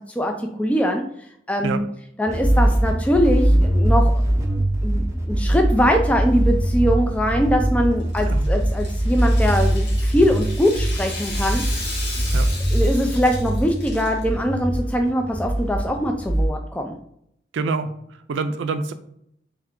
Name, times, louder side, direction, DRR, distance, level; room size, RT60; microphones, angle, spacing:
voice 1, 0.2-1.0 1.5-1.8 2.2-4.1 4.8-11.6 12.7-17.0, equal, 5° left, 3 dB, 0.3 m, -22 dB
sound 1, 2.3-16.5, right 1 dB, 15° right, 0.7 m, -22 dB
Rattle (instrument), 8.0-14.2, left 2 dB, 75° left, 1.5 m, -35 dB
voice 2, 17.5-18.9, right 4 dB, 85° right, 9 dB, 0.4 m, -26 dB
3.6 x 3.3 x 3.6 m, 0.70 s
head